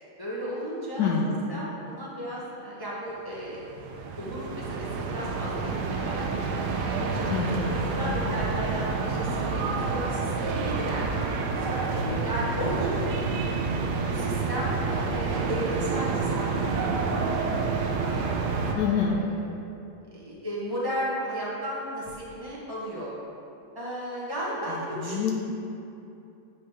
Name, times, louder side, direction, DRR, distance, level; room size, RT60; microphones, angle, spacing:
voice 1, 0.2-1.1 1.5-3.6 4.2-6.6 7.1-7.4 7.7-11.1 11.5-13.3 14.1-18.1 18.7-19.3 20.1-23.1 23.7-25.3, equal, 35° left, -7 dB, 0.3 m, -34 dB
voice 2, 1.0-1.4 7.3-7.8 8.1-8.2 18.7-19.2 25.0-25.3, left 6 dB, 70° left, -1 dB, 1.1 m, -26 dB
sound 1, 3.4-18.7, right 4 dB, 75° right, 0.9 m, -28 dB
9.2 x 3.3 x 5.7 m, 2.8 s
omnidirectional pair, 2.3 m